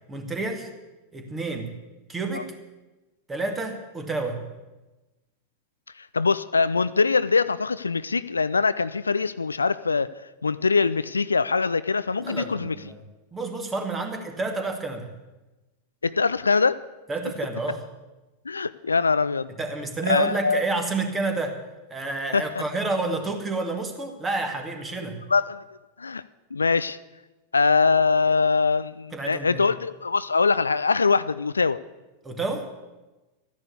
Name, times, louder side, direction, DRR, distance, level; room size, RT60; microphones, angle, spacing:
voice 1, 0.1-0.7 1.1-1.7 2.1-2.5 3.3-4.5 12.2-13.0 13.3-15.1 17.1-17.8 19.6-21.6 21.9-25.2 29.1-29.6 32.2-32.7, right 3 dB, 15° right, 5 dB, 2.3 m, -29 dB
voice 2, 6.0-10.1 10.4-12.8 16.0-16.8 18.5-19.5 20.0-20.6 22.3-22.4 25.3-25.6 26.0-26.2 26.5-27.0 27.5-31.8, left 4 dB, 75° left, 16 dB, 0.4 m, -23 dB
13.5 x 10.5 x 8.4 m, 1.1 s
figure-of-eight pair, 90°, 0 cm